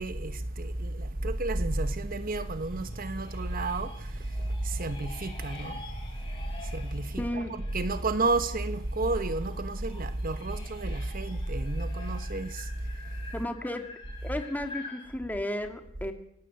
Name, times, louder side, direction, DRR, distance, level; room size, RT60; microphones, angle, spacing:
voice 1, 0.0-4.1 4.6-5.8 6.6-7.5 7.7-12.7, right 2 dB, 45° right, 1.2 m, -31 dB
sound 1, 1.8-15.1, left 2 dB, 25° left, 6.6 m, -47 dB
voice 2, 7.2-7.5 13.3-13.9 14.2-16.1, left 1 dB, 10° left, 2.4 m, -33 dB
27.0 x 17.0 x 8.0 m
head